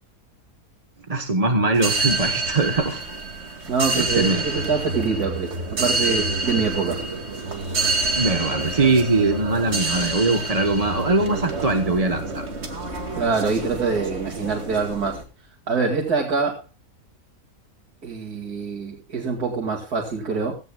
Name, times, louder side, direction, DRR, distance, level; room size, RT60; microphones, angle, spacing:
voice 1, 1.1-3.0 3.9-4.4 8.2-12.4, right 3 dB, 25° right, 6 dB, 1.1 m, -21 dB
sound 1, 1.7-15.2, right 2 dB, 45° right, 2.5 m, -27 dB
voice 2, 3.7-7.0 7.8-8.0 13.1-15.2 15.7-16.6 18.0-20.5, right 4 dB, 85° right, 0 dB, 2.9 m, -25 dB
16.0 x 16.0 x 2.3 m, 0.30 s
omnidirectional pair, 1.6 m